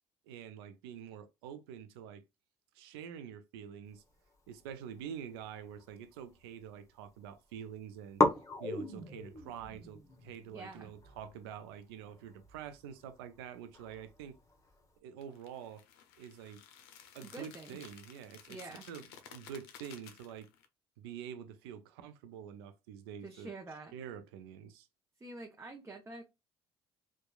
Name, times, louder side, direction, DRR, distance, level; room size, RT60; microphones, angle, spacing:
voice 1, 0.3-2.2 2.7-4.0 4.5-8.2 8.6-14.4 15.0-15.8 16.2-16.6 17.1-20.5 21.0-23.5 23.9-24.9, right 8 dB, 85° right, 0.4 m, -47 dB
sound 1, 4.6-6.4 6.7-7.4 7.6-7.7 8.1-15.0, left 2 dB, 25° left, 0.7 m, -38 dB
voice 2, 10.5-10.9 17.2-17.8 18.5-18.8 23.2-23.9 25.2-26.2, right 2 dB, 20° right, 0.6 m, -47 dB
sound 2, 15.2-20.7, left 8 dB, 85° left, 0.5 m, -55 dB
2.9 x 2.2 x 2.2 m
hypercardioid pair, 70°, 13 cm